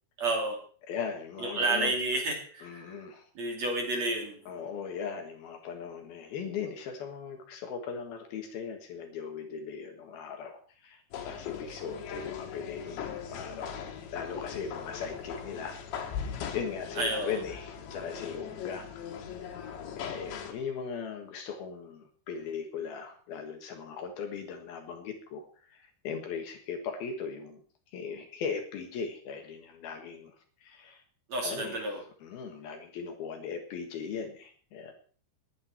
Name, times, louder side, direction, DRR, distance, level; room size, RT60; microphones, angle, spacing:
voice 1, 0.2-0.6 1.4-3.0 3.4-4.4 17.0-17.4 31.3-32.0, right 2 dB, 40° right, 1 dB, 3.6 m, -30 dB
voice 2, 0.9-2.0 2.6-3.2 4.5-13.8 14.1-15.8 16.1-18.9 20.0-27.6 27.9-30.3 30.6-31.0 31.4-31.9 32.2-34.9, left 6 dB, 65° left, 5 dB, 3.1 m, -38 dB
sound 1, 11.1-20.5, left 8 dB, 80° left, 4.0 m, -40 dB
20.0 x 9.8 x 4.4 m, 0.43 s
omnidirectional pair, 5.1 m